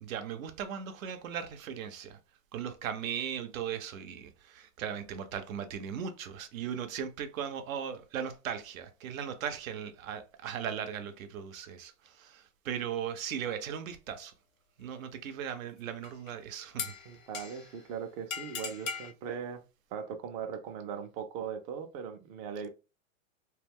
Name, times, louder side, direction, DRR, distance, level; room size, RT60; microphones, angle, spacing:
voice 1, 0.0-2.2 2.5-14.3 14.8-16.9, right 8 dB, 80° right, 0.6 m, -38 dB
sound 1, 16.0-16.3 16.8-17.8 18.3-19.1, left 6 dB, 80° left, 0.8 m, -39 dB
voice 2, 17.1-19.6 19.9-22.7, right 7 dB, 35° right, 0.4 m, -39 dB
2.3 x 2.1 x 3.4 m
hypercardioid pair, 120°, 40 cm